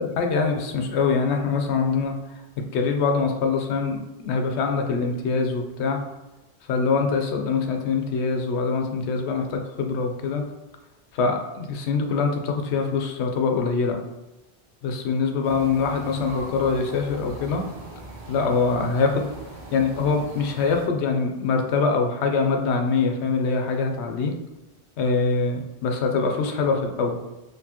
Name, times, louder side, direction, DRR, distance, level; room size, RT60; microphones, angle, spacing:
voice 1, 0.0-2.4 2.7-6.0 6.6-10.4 11.1-14.0 14.8-17.6 18.3-19.3 19.7-24.3 25.0-27.4, left 4 dB, 80° left, 4 dB, 0.9 m, -24 dB
sound 1, 15.4-20.9, right 2 dB, 70° right, 1.2 m, -40 dB
4.4 x 3.2 x 2.9 m, 1.0 s
omnidirectional pair, 1.1 m